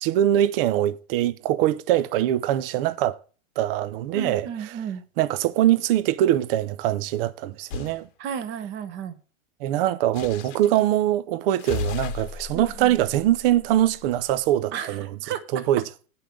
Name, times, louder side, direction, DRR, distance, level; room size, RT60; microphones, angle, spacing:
voice 1, 0.0-3.2 3.6-4.7 5.2-8.1 9.6-15.2 15.5-15.8, right 12 dB, 45° right, 0.7 m, -23 dB
voice 2, 4.1-5.0 8.2-9.2 12.5-12.9 14.7-15.4, right 8 dB, 30° right, 1.1 m, -33 dB
sound 1, 7.7-8.0 10.1-10.9 11.6-14.2, left 7 dB, 40° left, 1.1 m, -35 dB
8.7 x 5.7 x 7.5 m
supercardioid pair, 150°, 41 cm